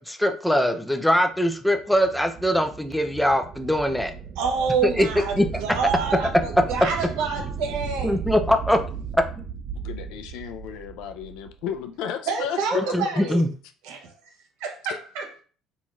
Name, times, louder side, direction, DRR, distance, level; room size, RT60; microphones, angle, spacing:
voice 1, 0.1-4.1 4.8-5.1 5.4-5.5 8.0-8.8 9.1-9.2 12.7-13.5, equal, 5° left, 7 dB, 0.5 m, -22 dB
sound 1, 1.7-11.8, right 6 dB, 50° right, 0.3 m, -36 dB
voice 2, 4.4-8.2 12.3-13.4 13.8-14.1 14.6-15.3, right 5 dB, 80° right, 2 dB, 1.0 m, -28 dB
voice 3, 9.8-12.9 13.3-13.4, left 9 dB, 75° left, 6 dB, 0.5 m, -33 dB
4.0 x 3.0 x 2.4 m, 0.41 s
supercardioid pair, 80°, 0 cm